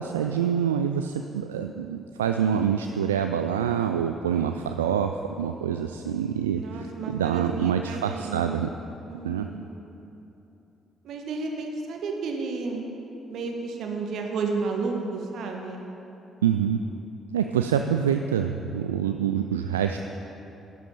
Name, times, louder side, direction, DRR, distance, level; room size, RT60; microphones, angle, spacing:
voice 1, 0.0-8.7 9.2-9.5 16.4-16.8 17.3-20.0, right 8 dB, 80° right, 6 dB, 0.3 m, -26 dB
voice 2, 6.6-8.4 9.1-9.7 11.0-12.8 13.3-15.9, right 4 dB, 60° right, 2 dB, 1.5 m, -32 dB
12.0 x 10.5 x 5.5 m, 2.9 s
figure-of-eight pair, 45°, 0 cm